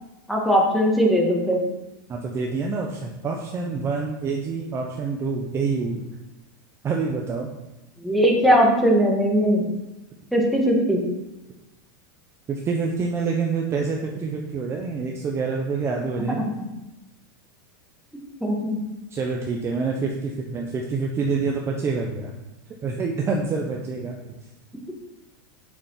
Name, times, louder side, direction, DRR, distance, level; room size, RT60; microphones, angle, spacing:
voice 1, 0.3-1.6 8.0-9.7 10.3-11.1 16.3-16.7 18.4-18.8, equal, ahead, -2 dB, 2.0 m, -20 dB
voice 2, 2.1-6.0 6.8-7.5 12.5-16.4 19.1-22.3 22.8-24.2, right 4 dB, 25° right, 0 dB, 1.0 m, -27 dB
8.6 x 7.0 x 5.8 m, 0.99 s
supercardioid pair, 140°, 11 cm